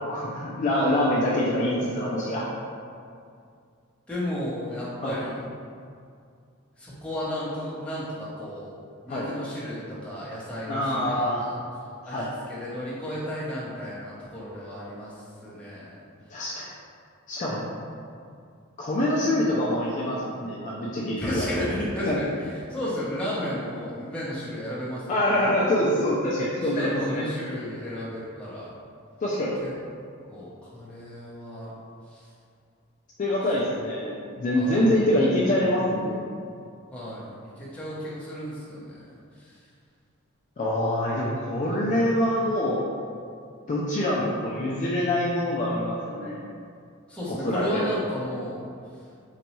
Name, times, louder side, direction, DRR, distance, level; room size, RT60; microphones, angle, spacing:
voice 1, 0.0-2.5 5.0-5.1 9.1-9.3 10.7-11.4 12.0-12.3 16.3-16.7 17.3-17.6 18.8-21.5 22.1-22.2 25.1-27.3 29.2-29.5 33.2-36.2 40.6-42.8 43.7-46.4 47.3-47.8, left 1 dB, 35° left, -6 dB, 0.4 m, -25 dB
voice 2, 4.1-5.4 6.8-8.7 9.0-11.6 12.1-15.1 15.4-15.9 17.5-17.7 21.2-25.4 26.5-28.7 29.6-29.7 30.3-31.7 32.1-32.2 34.5-34.9 36.9-39.0 39.4-39.5 41.6-41.9 47.1-48.7, equal, 5° left, -9 dB, 0.8 m, -33 dB
3.9 x 2.2 x 3.0 m, 2.3 s
head